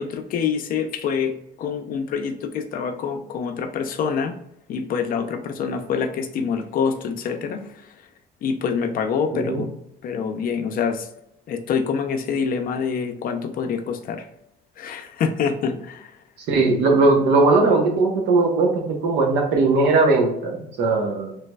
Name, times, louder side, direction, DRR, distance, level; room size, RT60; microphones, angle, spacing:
voice 1, 0.0-4.4 4.7-7.9 8.4-9.7 10.0-11.1 11.5-14.3 14.8-16.2, left 6 dB, 60° left, 6 dB, 0.5 m, -26 dB
voice 2, 16.5-21.3, right 3 dB, 85° right, 2 dB, 0.8 m, -19 dB
3.3 x 3.0 x 2.2 m, 0.77 s
cardioid pair, 110°, 17 cm